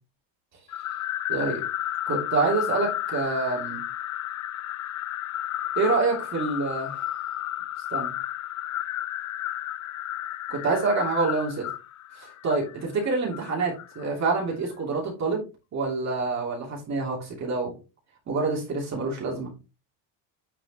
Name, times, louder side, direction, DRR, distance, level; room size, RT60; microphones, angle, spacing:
sound 1, 0.7-14.1, left 13 dB, 35° left, 0.5 m, -32 dB
voice 1, 1.3-1.6 2.1-3.8 5.8-7.1 7.9-8.1 10.5-11.7 12.1-15.4 15.7-17.7 18.3-19.5, right 3 dB, 35° right, -2 dB, 2.8 m, -27 dB
9.6 x 5.6 x 2.9 m, 0.29 s
cardioid pair, 145°, 49 cm